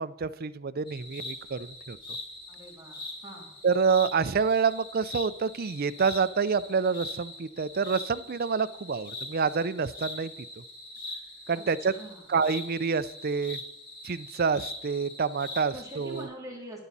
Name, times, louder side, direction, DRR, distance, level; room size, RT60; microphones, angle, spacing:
voice 1, 0.0-2.0 3.6-10.3 11.5-11.9 12.3-13.6 14.0-16.3, right 5 dB, 45° right, 14 dB, 0.5 m, -27 dB
sound 1, 0.9-16.2, left 2 dB, 25° left, 3.4 m, -42 dB
voice 2, 2.5-3.5 11.5-12.2 15.7-16.8, right 1 dB, 15° right, -2 dB, 2.9 m, -44 dB
21.5 x 7.2 x 4.1 m, 0.90 s
head